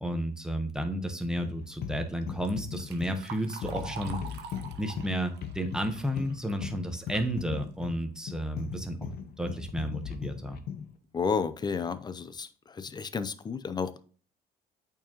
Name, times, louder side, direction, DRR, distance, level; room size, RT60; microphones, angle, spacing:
voice 1, 0.0-4.2 4.8-9.1 9.4-10.6, equal, 5° right, 5 dB, 1.0 m, -32 dB
sound 1, 1.4-10.9, left 8 dB, 65° left, 0.8 m, -39 dB
Liquid, 2.2-7.3 7.7-7.8 8.7-8.8 9.2-9.6 10.2-10.3 10.8-10.9 11.3-11.6, right 6 dB, 85° right, 0.9 m, -46 dB
voice 2, 11.1-14.0, left 5 dB, 25° left, 13 dB, 0.6 m, -32 dB
8.3 x 4.6 x 2.9 m, 0.42 s
cardioid pair, 110°, 17 cm